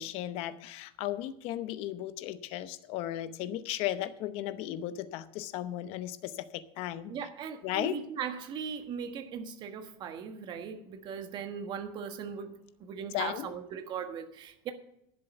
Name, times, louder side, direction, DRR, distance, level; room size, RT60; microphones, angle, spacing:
voice 1, 0.0-7.1 7.6-8.0 13.1-13.5, left 12 dB, 50° left, 0.8 m, -35 dB
voice 2, 7.1-12.5 12.8-14.7, right 7 dB, 35° right, 1.5 m, -38 dB
11.5 x 7.6 x 7.1 m
cardioid pair, 160°, 12 cm